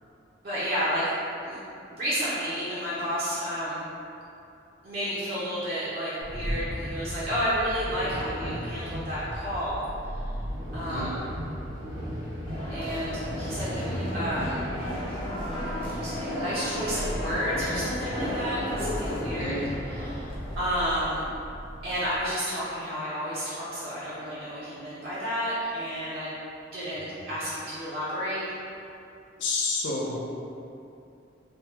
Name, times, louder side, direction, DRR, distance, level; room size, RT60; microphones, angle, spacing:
voice 1, 0.4-1.0 1.4-1.6 1.9-3.9 4.8-9.9 10.1-10.2 10.7-11.3 12.7-14.6 15.6-19.5 19.9-21.3 21.8-26.3 26.7-28.4, equal, 50° right, -11 dB, 0.6 m, -31 dB
sound 1, 6.2-22.2, equal, 75° right, 1.0 m, -36 dB
sound 2, 12.4-21.1, left 1 dB, 30° left, 0.6 m, -34 dB
voice 2, 29.4-30.2, left 3 dB, 65° left, -3 dB, 0.5 m, -30 dB
3.3 x 2.2 x 2.8 m, 2.7 s
head